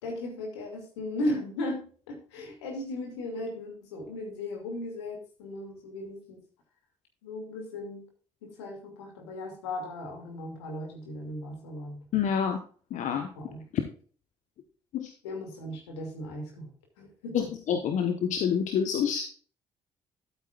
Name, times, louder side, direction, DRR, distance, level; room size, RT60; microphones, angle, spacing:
voice 1, 0.0-6.4 7.2-8.1 8.4-12.0 13.4-13.6 15.2-16.7 17.0-17.5, left 1 dB, 85° left, 2 dB, 2.6 m, -36 dB
voice 2, 12.1-12.6 12.9-13.3 14.9-15.1 17.3-19.2, left 7 dB, 65° left, 6 dB, 1.2 m, -27 dB
12.0 x 8.8 x 2.5 m, 0.41 s
hypercardioid pair, 45°, 14 cm